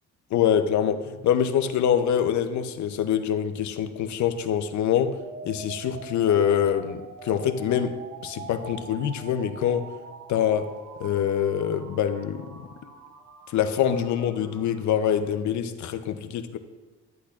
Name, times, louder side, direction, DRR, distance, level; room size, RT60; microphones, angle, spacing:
voice 1, 0.3-5.1 5.4-8.0 8.2-9.9 10.3-10.7 11.0-12.5 13.5-16.6, left 9 dB, 70° left, 9 dB, 0.7 m, -25 dB
sound 1, 5.2-15.2, right 4 dB, 60° right, 1.5 m, -44 dB
12.0 x 8.0 x 2.4 m, 1.3 s
cardioid pair, 90°, 30 cm